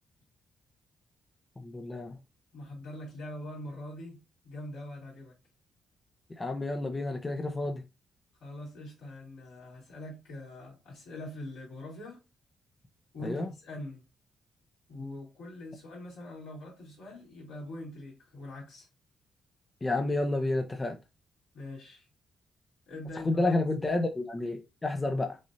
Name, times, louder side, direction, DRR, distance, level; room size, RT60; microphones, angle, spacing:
voice 1, 1.6-2.2 6.4-7.8 13.2-13.5 19.8-21.0 23.2-25.4, left 2 dB, 30° left, 0.8 m, -30 dB
voice 2, 2.5-4.2 4.4-5.3 8.4-12.2 13.1-14.0 14.9-18.9 21.5-22.1 22.8-23.5, left 1 dB, 85° left, 3.0 m, -43 dB
6.3 x 2.7 x 2.7 m
hypercardioid pair, 50°, 0 cm